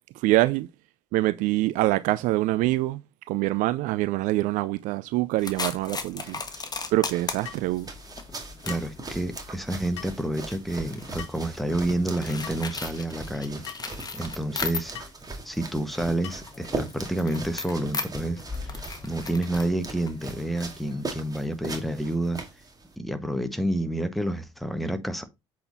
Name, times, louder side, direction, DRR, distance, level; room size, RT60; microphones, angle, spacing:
voice 1, 0.2-0.7 1.1-3.0 3.3-6.4 6.9-7.9, right 17 dB, 65° right, 0.4 m, -25 dB
sound 1, 5.4-15.2 15.5-20.9, left 4 dB, 25° left, 1.4 m, -37 dB
sound 2, 6.0-22.9, right 3 dB, 25° right, 2.0 m, -40 dB
sound 3, 7.4-7.7 8.7-8.9 10.0-10.2 11.2-11.5 12.4-12.6 13.7-13.9 14.9-15.2 16.2-16.5, left 10 dB, 80° left, 0.8 m, -41 dB
voice 2, 8.7-13.6 14.1-14.9 15.4-22.4 23.0-25.2, right 1 dB, ahead, 1.4 m, -29 dB
7.6 x 4.3 x 4.0 m
hypercardioid pair, 55°, 15 cm